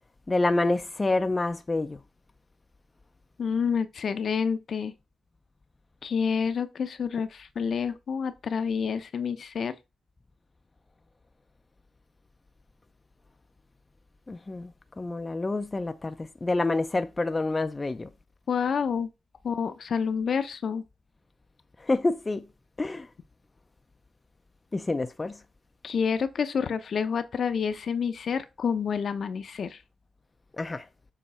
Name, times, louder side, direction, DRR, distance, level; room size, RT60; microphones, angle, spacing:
voice 1, 0.3-2.0 14.3-14.7 15.0-16.1 16.4-18.1 21.9-22.5 22.8-23.1 24.7-25.3 30.6-30.9, left 2 dB, 25° left, 0.5 m, -27 dB
voice 2, 3.4-4.9 6.0-9.7 18.5-19.1 19.4-20.8 25.8-29.8, left 6 dB, 60° left, 0.7 m, -28 dB
7.0 x 3.1 x 4.3 m
cardioid pair, 75°, 0 cm